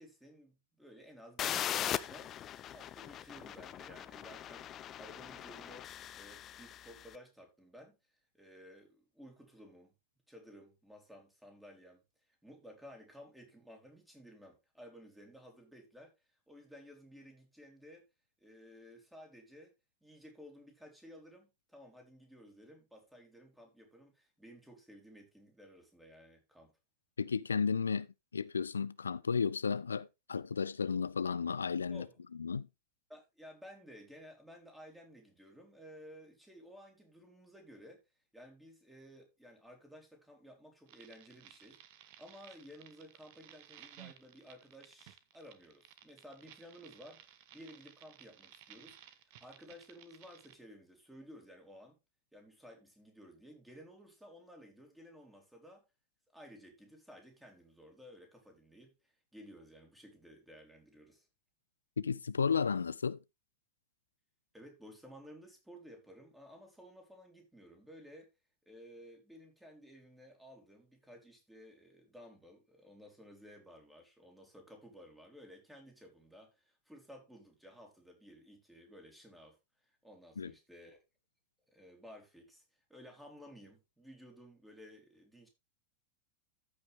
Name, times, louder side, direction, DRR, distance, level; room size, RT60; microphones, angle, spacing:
voice 1, 0.0-2.3 2.7-8.0 8.3-9.9 10.3-12.0 12.3-16.1 16.5-18.1 18.4-19.7 20.0-26.7 31.9-32.2 33.1-38.0 38.3-41.8 42.2-52.0 52.3-55.8 56.3-61.3 64.5-68.3 68.6-81.0 81.7-82.6 82.9-85.5, equal, 5° right, 3.5 m, -55 dB
sound 1, 1.4-7.1, left 11 dB, 30° left, 0.6 m, -40 dB
voice 2, 27.2-28.1 28.3-32.0 32.4-32.7 62.0-63.2 80.4-80.5, left 6 dB, 75° left, 0.4 m, -33 dB
sound 2, 40.9-50.6, right 12 dB, 50° right, 1.1 m, -57 dB
14.0 x 5.6 x 3.5 m
figure-of-eight pair, 90°, 0 cm